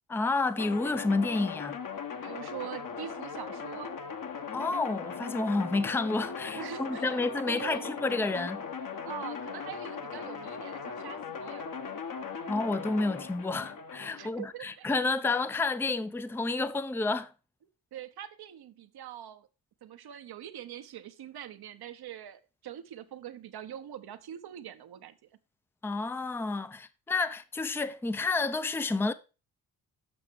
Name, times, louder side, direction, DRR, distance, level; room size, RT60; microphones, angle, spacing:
voice 1, 0.1-1.8 4.5-8.6 12.3-17.3 25.8-29.1, left 3 dB, 5° left, 0.5 m, -30 dB
sound 1, 0.6-14.3, left 6 dB, 50° left, 1.2 m, -39 dB
voice 2, 2.2-4.0 6.5-8.0 9.1-11.8 14.1-14.9 17.9-19.5 19.8-25.2, right 10 dB, 60° right, 1.0 m, -43 dB
7.3 x 5.9 x 4.6 m
supercardioid pair, 55°, 43 cm